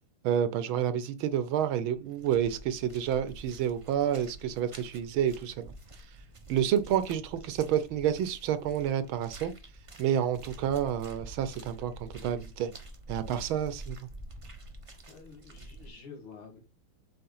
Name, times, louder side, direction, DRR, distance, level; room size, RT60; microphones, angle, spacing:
voice 1, 0.2-5.7 6.5-9.5 10.0-12.7 13.1-14.0, right 9 dB, 75° right, 1.5 m, -29 dB
sound 1, 1.4-1.6 1.9-15.9, right 1 dB, 30° right, 0.5 m, -48 dB
voice 2, 15.1-16.6, left 5 dB, 70° left, 2.9 m, -48 dB
7.7 x 4.1 x 5.5 m
omnidirectional pair, 2.4 m